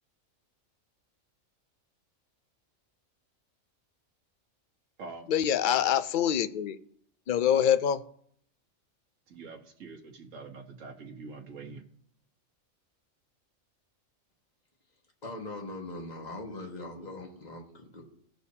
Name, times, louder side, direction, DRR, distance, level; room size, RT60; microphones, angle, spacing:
voice 1, 5.3-6.8 7.3-8.0, left 9 dB, 60° left, 11 dB, 0.5 m, -25 dB
voice 2, 9.3-11.8, right 4 dB, 70° right, 1 dB, 1.5 m, -45 dB
voice 3, 15.2-18.0, left 2 dB, 30° left, 1 dB, 1.7 m, -41 dB
17.5 x 6.8 x 2.8 m, 0.66 s
omnidirectional pair, 1.4 m